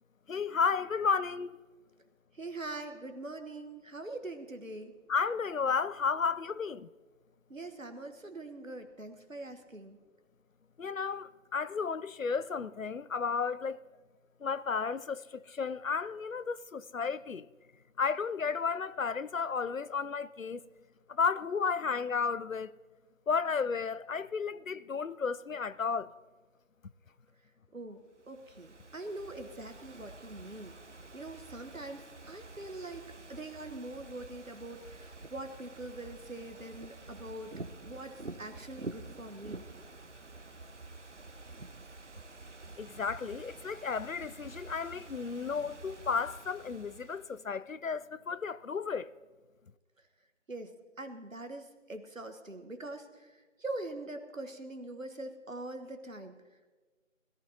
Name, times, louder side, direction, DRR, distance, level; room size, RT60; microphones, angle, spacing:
voice 1, 0.3-1.6 5.1-6.9 10.8-13.8 14.4-17.5 18.0-20.6 21.1-22.7 23.3-26.1 42.8-49.1, left 5 dB, 80° left, 0.6 m, -33 dB
voice 2, 2.3-4.9 7.5-10.0 27.7-28.0 28.3-30.8 31.1-33.0 33.3-37.5 37.8-39.6 50.5-56.4, right 2 dB, 75° right, 1.3 m, -43 dB
Ocean / Fireworks, 28.2-47.4, right 2 dB, 60° right, 0.7 m, -48 dB
21.0 x 14.5 x 2.8 m
figure-of-eight pair, 180°, 40 cm